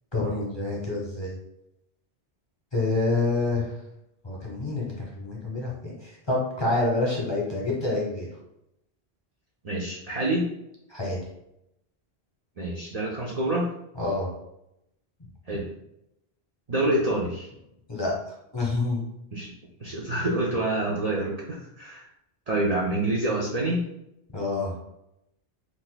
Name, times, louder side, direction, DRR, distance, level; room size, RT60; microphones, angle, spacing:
voice 1, 0.1-1.3 2.7-3.7 4.2-8.3 10.9-11.2 14.0-14.3 17.9-18.1 18.5-19.0 24.3-24.7, left 2 dB, 25° left, -3 dB, 0.9 m, -27 dB
voice 2, 9.6-10.4 12.6-13.7 15.5-15.7 16.7-17.5 19.3-19.5 19.8-22.1 22.5-23.8, right 1 dB, 45° right, -5 dB, 0.6 m, -27 dB
2.6 x 2.4 x 3.9 m, 0.83 s
omnidirectional pair, 1.1 m